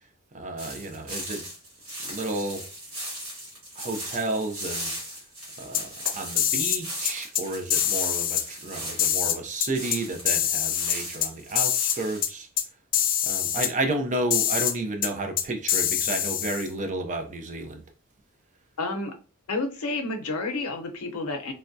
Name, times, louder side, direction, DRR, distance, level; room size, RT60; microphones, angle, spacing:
voice 1, 0.3-1.4 2.0-2.7 3.8-4.9 5.6-12.5 13.2-17.8, right 2 dB, 35° right, 0.5 m, -31 dB
sound 1, 0.6-10.3 10.6-12.2, right 1 dB, 65° right, 1.5 m, -38 dB
sound 2, 5.7-6.8 7.1-7.4 7.7-8.4 9.0-10.0 10.3-11.3 11.6-12.0 12.2-12.3 12.6-12.7 12.9-13.7 14.3-14.7 15.0-15.1 15.4-16.7, left 10 dB, 40° left, 0.4 m, -24 dB
voice 2, 18.8-19.1 19.5-21.5, left 3 dB, 75° left, 0.7 m, -30 dB
3.4 x 2.2 x 2.6 m
head